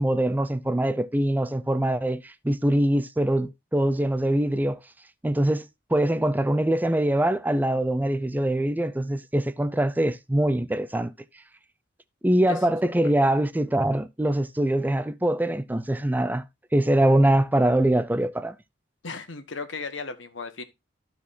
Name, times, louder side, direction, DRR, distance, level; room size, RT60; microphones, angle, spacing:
voice 1, 0.0-4.8 5.2-11.1 12.2-16.4 16.7-18.6, right 1 dB, 10° right, 0.5 m, -23 dB
voice 2, 19.0-20.6, left 4 dB, 75° left, 1.4 m, -35 dB
14.0 x 4.8 x 2.7 m
head